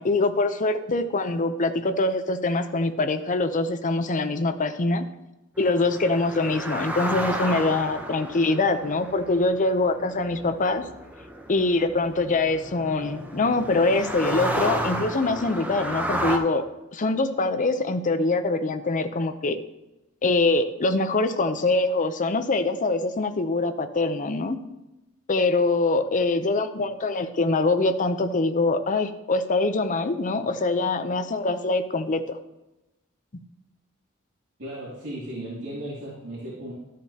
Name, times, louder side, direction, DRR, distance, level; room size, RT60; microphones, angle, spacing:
voice 1, 0.0-5.1 5.6-10.8 11.5-16.6 16.9-19.6 20.2-24.6 25.3-32.4 33.3-33.4, left 2 dB, 35° left, 9 dB, 0.6 m, -24 dB
Several cars cross the highway at high speed, 5.6-16.4, equal, 10° right, 0.8 m, -32 dB
voice 2, 34.6-36.7, right 1 dB, 65° right, -9 dB, 2.6 m, -35 dB
12.5 x 7.5 x 2.8 m, 0.95 s
head